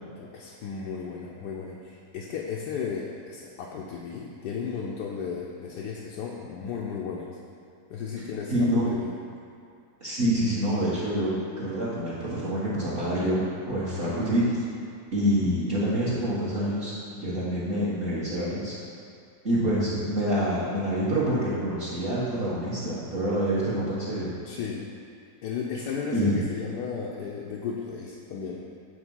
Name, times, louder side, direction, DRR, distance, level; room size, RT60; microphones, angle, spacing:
voice 1, 0.0-7.4 7.9-9.1 24.4-24.8 25.4-28.6, left 6 dB, 80° left, -3 dB, 1.2 m, -34 dB
voice 2, 8.5-8.8 10.0-14.6 15.1-18.8 19.4-24.3 26.1-26.4, equal, 35° right, -9 dB, 1.3 m, -26 dB
8.0 x 3.6 x 5.4 m, 2.4 s
omnidirectional pair, 1.8 m